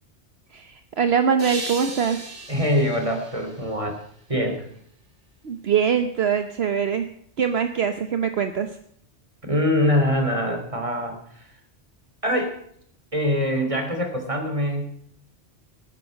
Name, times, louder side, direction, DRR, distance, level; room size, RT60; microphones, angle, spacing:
voice 1, 0.5-2.2 5.4-7.1 7.4-8.7, right 7 dB, 65° right, 8 dB, 1.2 m, -23 dB
sound 1, 1.4-4.5, right 2 dB, 85° right, 3.0 m, -37 dB
voice 2, 2.5-4.0 4.3-4.7 9.4-11.5 12.2-12.5 13.1-14.8, left 1 dB, 30° right, 4 dB, 3.2 m, -23 dB
19.0 x 9.8 x 6.5 m, 0.65 s
omnidirectional pair, 1.1 m